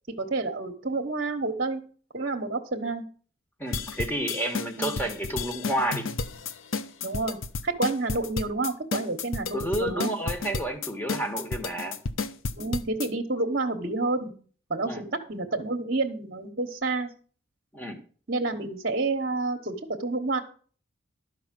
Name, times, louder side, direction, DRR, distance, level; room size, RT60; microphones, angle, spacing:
voice 1, 0.1-1.8 2.1-3.0 4.8-5.1 7.0-7.4 7.6-10.1 12.6-14.3 14.7-17.1 18.3-20.4, right 3 dB, 45° right, 3 dB, 1.1 m, -29 dB
voice 2, 3.6-6.1 9.5-12.0 14.9-15.0 17.7-18.0, right 1 dB, 10° left, 5 dB, 1.5 m, -30 dB
sound 1, 3.7-13.1, left 4 dB, 75° left, 0.7 m, -32 dB
12.5 x 5.2 x 7.5 m, 0.43 s
head